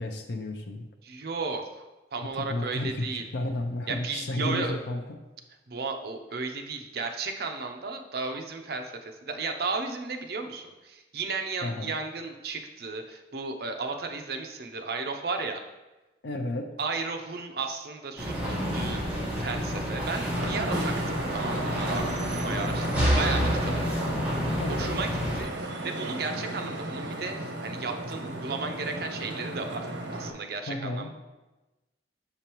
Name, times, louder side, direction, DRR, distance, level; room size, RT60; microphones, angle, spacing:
voice 1, 0.0-0.8 2.3-5.0 11.6-11.9 16.2-16.7 24.6-25.0 30.7-31.1, left 1 dB, 70° left, 3 dB, 0.5 m, -32 dB
voice 2, 1.0-1.8 2.1-3.3 3.9-4.8 5.7-15.6 16.8-23.9 24.7-31.1, right 4 dB, 55° right, 4 dB, 0.6 m, -34 dB
sound 1, 18.2-25.4, equal, 5° right, 1.4 m, -28 dB
Vehicle horn car horn honking / Traffic noise roadway noise, 20.3-30.3, right 1 dB, 75° right, 0.9 m, -35 dB
6.8 x 5.1 x 3.0 m, 1.1 s
head